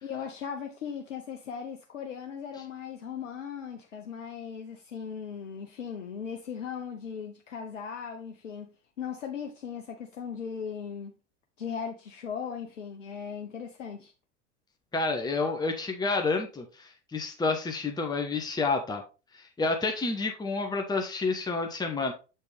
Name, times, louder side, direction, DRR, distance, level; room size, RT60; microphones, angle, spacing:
voice 1, 0.0-11.2 11.6-14.1, left 7 dB, 85° left, 0.8 m, -38 dB
voice 2, 14.9-19.0 19.3-22.1, left 3 dB, 10° left, 1.1 m, -29 dB
7.0 x 4.4 x 3.3 m
hypercardioid pair, 85°, 36 cm